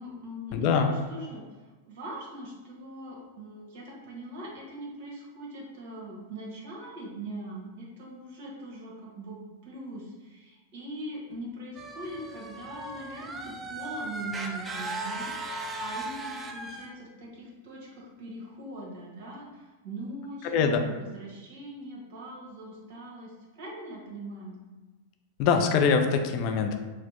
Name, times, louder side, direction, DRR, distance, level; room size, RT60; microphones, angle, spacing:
voice 1, 0.0-1.4 1.8-24.6, right 1 dB, 60° right, -3 dB, 1.1 m, -41 dB
voice 2, 0.5-0.9 20.4-20.8 25.4-26.8, left 5 dB, 50° left, 5 dB, 0.4 m, -23 dB
sound 1, 11.8-16.9, right 2 dB, 15° right, 0.4 m, -37 dB
4.0 x 2.0 x 3.0 m, 1.2 s
hypercardioid pair, 100°, 0 cm